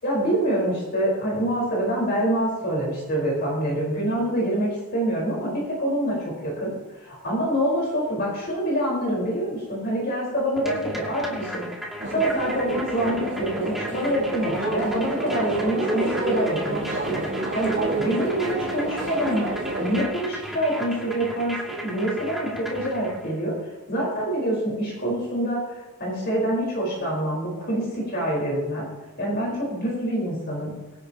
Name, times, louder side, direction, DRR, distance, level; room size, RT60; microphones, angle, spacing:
voice 1, 0.0-6.7 7.0-19.4 19.8-23.5 23.9-25.7 26.0-28.9 29.2-30.7, right 1 dB, 50° left, -4 dB, 4.6 m, -26 dB
sound 1, 10.6-23.4, equal, ahead, 2.3 m, -36 dB
sound 2, 12.0-20.1, right 2 dB, 55° right, 2.9 m, -29 dB
24.0 x 10.0 x 3.0 m, 1.1 s
head